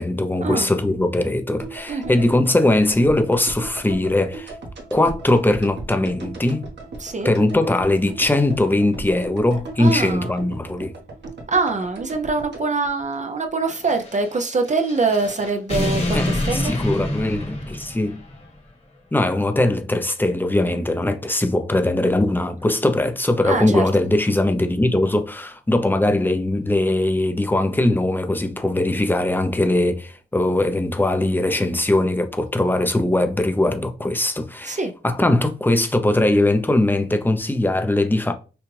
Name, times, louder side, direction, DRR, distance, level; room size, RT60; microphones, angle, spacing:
voice 1, 0.0-4.5 4.9-6.7 7.2-10.9 16.1-18.2 19.1-34.8 35.0-38.3, left 1 dB, 10° left, 0.6 m, -20 dB
sound 1, 1.6-13.8 14.0-14.1, right 3 dB, 65° right, 1.4 m, -37 dB
voice 2, 7.0-7.3 9.8-10.3 11.5-16.8 23.4-23.9 34.6-34.9, right 3 dB, 40° right, 0.5 m, -24 dB
sound 2, 13.7-18.5, left 1 dB, 35° left, 1.3 m, -27 dB
5.8 x 2.4 x 3.2 m
wide cardioid pair, 115°, 19 cm